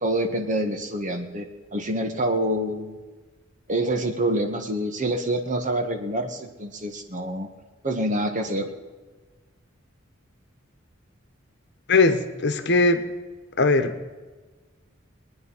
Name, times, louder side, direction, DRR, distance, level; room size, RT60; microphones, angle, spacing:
voice 1, 0.0-3.0 3.7-7.5 7.8-8.7, right 1 dB, 40° right, 5 dB, 1.6 m, -26 dB
voice 2, 11.9-13.0 13.6-13.9, left 3 dB, 60° left, 8 dB, 1.2 m, -19 dB
22.5 x 9.6 x 5.6 m, 1.3 s
head